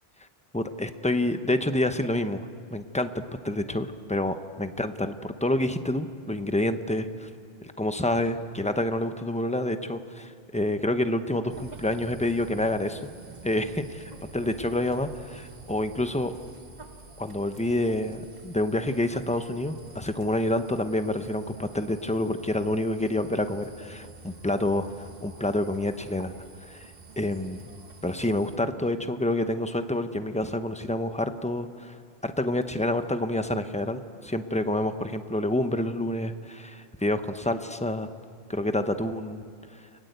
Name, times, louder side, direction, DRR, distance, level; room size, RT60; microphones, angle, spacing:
voice 1, 0.5-3.1 3.4-7.3 7.6-13.0 13.4-16.3 17.2-26.3 26.6-27.6 28.0-32.0 32.2-38.1 38.5-39.4, left 1 dB, 5° left, 8 dB, 0.9 m, -28 dB
sound 1, 11.5-28.6, right 3 dB, 40° right, 1.5 m, -48 dB
29.5 x 21.5 x 8.2 m, 2.3 s
omnidirectional pair, 1.1 m